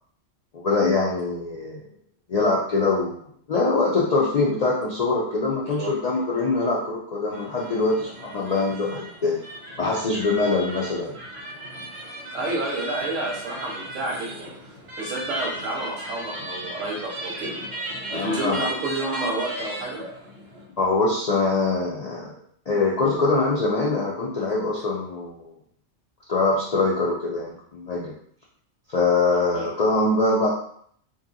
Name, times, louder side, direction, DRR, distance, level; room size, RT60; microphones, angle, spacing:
voice 1, 0.5-1.8 2.3-9.4 9.8-11.1 18.1-18.6 20.8-22.3 22.7-25.5 26.3-28.1 28.9-30.5, left 3 dB, 65° left, -5 dB, 0.4 m, -23 dB
voice 2, 5.5-5.9 12.3-14.5 15.0-17.6 18.1-20.0 29.3-29.7, right 2 dB, 85° right, -4 dB, 1.4 m, -30 dB
sound 1, 7.3-20.6, right 1 dB, 55° right, 1.1 m, -36 dB
3.0 x 2.7 x 2.5 m, 0.64 s
omnidirectional pair, 1.3 m